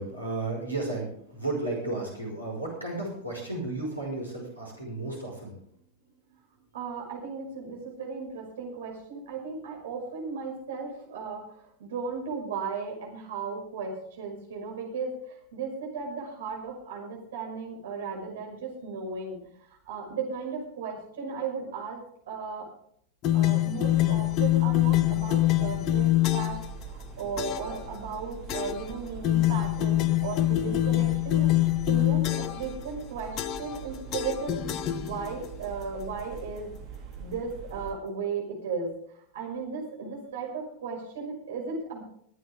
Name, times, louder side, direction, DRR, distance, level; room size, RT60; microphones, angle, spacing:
voice 1, 0.0-5.6 6.3-6.4, right 2 dB, 90° right, -3 dB, 5.4 m, -33 dB
voice 2, 6.7-19.5 19.8-22.0 22.3-22.7 23.3-31.5 31.9-36.7 37.2-42.0, right 5 dB, 60° right, 0 dB, 5.7 m, -36 dB
sound 1, 23.2-26.7 27.4-27.8 28.5-28.9 29.2-32.7 33.4-33.8 34.1-35.5, left 14 dB, 35° left, 0.9 m, -25 dB
sound 2, 23.9-37.9, right 5 dB, 35° right, 3.4 m, -43 dB
23.0 x 9.3 x 3.7 m, 0.67 s
figure-of-eight pair, 90°, 0 cm